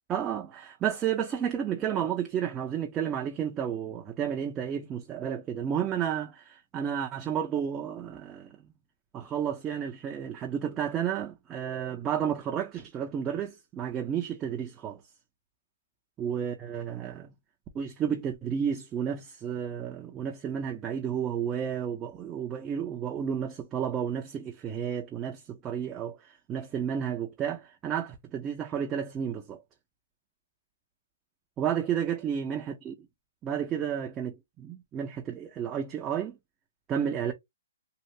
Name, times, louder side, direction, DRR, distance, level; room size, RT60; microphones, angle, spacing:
voice 1, 0.1-8.6 9.1-15.0 16.2-17.3 17.7-29.6 31.6-32.9 33.4-36.4 36.9-37.3, right 8 dB, 15° right, 0.5 m, -32 dB
3.1 x 2.4 x 2.8 m
hypercardioid pair, 160°, 0 cm